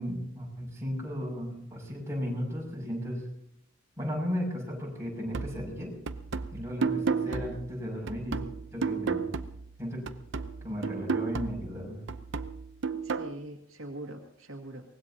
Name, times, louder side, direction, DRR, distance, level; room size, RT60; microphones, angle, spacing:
voice 1, 0.0-3.2 4.0-6.0 6.5-8.4 8.7-9.3 9.8-10.0 10.6-12.0, equal, 15° right, -2 dB, 6.8 m, -35 dB
sound 1, 5.3-9.8 10.1-13.3, right 5 dB, 65° right, 0.8 m, -33 dB
voice 2, 7.3-7.6 13.0-14.9, right 1 dB, 85° right, 3 dB, 2.0 m, -43 dB
24.0 x 19.5 x 2.9 m, 0.71 s
head